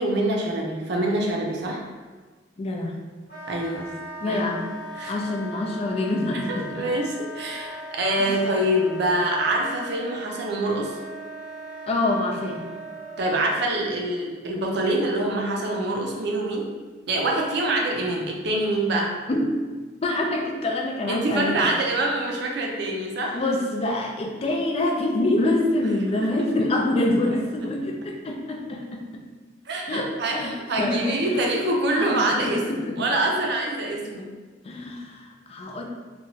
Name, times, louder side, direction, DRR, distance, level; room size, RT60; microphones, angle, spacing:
voice 1, 0.0-1.8 3.5-3.9 4.3-4.4 5.0-5.1 6.5-11.0 13.2-16.7 17.1-19.1 21.1-23.4 26.2-26.3 29.7-34.3, right 1 dB, 65° right, -1 dB, 0.5 m, -25 dB
voice 2, 2.6-2.9 4.2-4.7 5.1-6.7 8.2-8.4 11.9-12.7 19.3-19.5 20.0-21.7 23.3-29.0 29.9-31.4 31.9-33.1 34.6-35.8, left 2 dB, 35° left, 1 dB, 0.3 m, -26 dB
Wind instrument woodwind instrument, 3.3-13.4, right 1 dB, 55° left, 0.8 m, -39 dB
2.9 x 2.3 x 2.7 m, 1.4 s
head